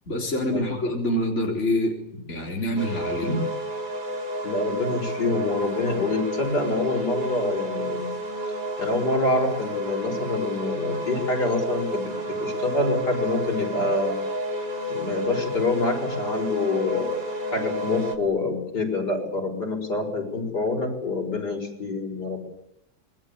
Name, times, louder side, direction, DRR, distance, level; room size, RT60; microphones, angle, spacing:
voice 1, 0.1-2.0 2.3-3.3, left 1 dB, 40° left, 0 dB, 4.3 m, -26 dB
sound 1, 2.8-18.2, equal, 75° right, 3.5 m, -30 dB
voice 2, 4.4-8.1 8.8-14.1 14.9-17.2 17.5-22.4, left 2 dB, 70° left, 3 dB, 6.4 m, -26 dB
27.5 x 22.5 x 8.7 m, 0.82 s
omnidirectional pair, 1.8 m